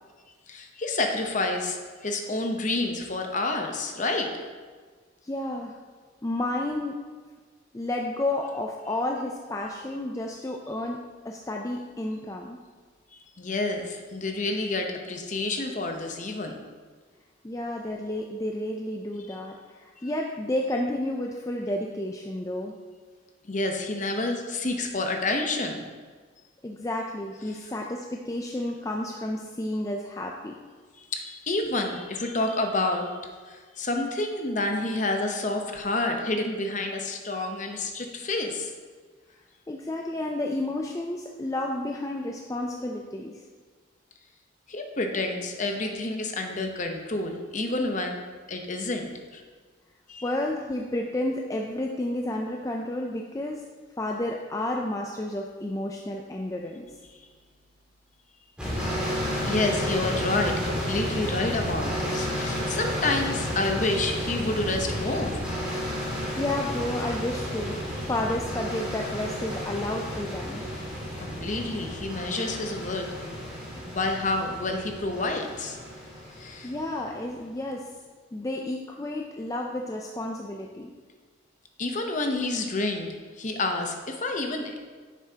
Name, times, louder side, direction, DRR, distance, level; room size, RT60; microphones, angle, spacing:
voice 1, 0.5-4.5 13.4-16.6 19.3-19.4 23.5-25.8 27.5-27.7 31.0-33.1 33.5-38.7 44.7-49.4 50.1-50.2 57.1-57.2 59.4-65.4 71.2-73.4 73.8-75.8 76.4-76.7 81.8-84.8, left 2 dB, 40° left, 4 dB, 0.8 m, -29 dB
voice 2, 5.2-5.8 6.2-7.0 7.7-11.0 11.2-12.6 17.4-22.7 26.6-30.6 39.7-43.4 50.2-53.6 54.0-56.9 66.4-70.6 76.6-77.9 78.3-80.9, left 1 dB, 15° left, 0 dB, 0.4 m, -31 dB
sound 1, 58.6-77.2, equal, 5° right, 1.9 m, -32 dB
9.5 x 7.4 x 2.8 m, 1.5 s
head